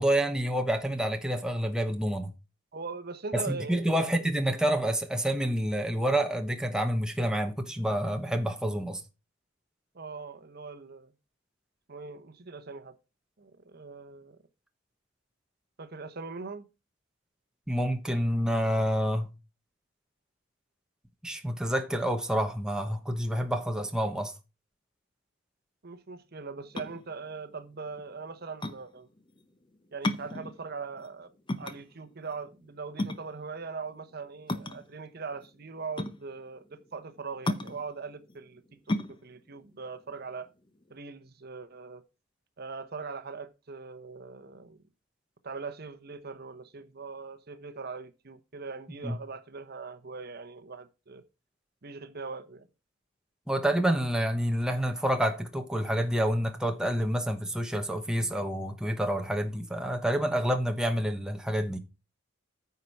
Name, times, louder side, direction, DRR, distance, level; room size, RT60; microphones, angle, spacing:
voice 1, 0.0-2.3 3.3-9.0 17.7-19.3 21.2-24.3 49.0-49.2 53.5-61.8, right 1 dB, 5° right, 1.0 m, -28 dB
voice 2, 2.7-4.2 9.9-11.1 11.9-13.0 13.4-14.4 15.8-16.6 25.8-29.1 29.9-31.3 31.6-38.6 38.9-40.5 40.9-42.0 42.6-44.8 45.4-51.2 51.8-52.7, right 4 dB, 55° right, 0.9 m, -41 dB
sound 1, 26.6-41.0, left 1 dB, 25° left, 0.8 m, -36 dB
9.5 x 4.7 x 5.8 m
head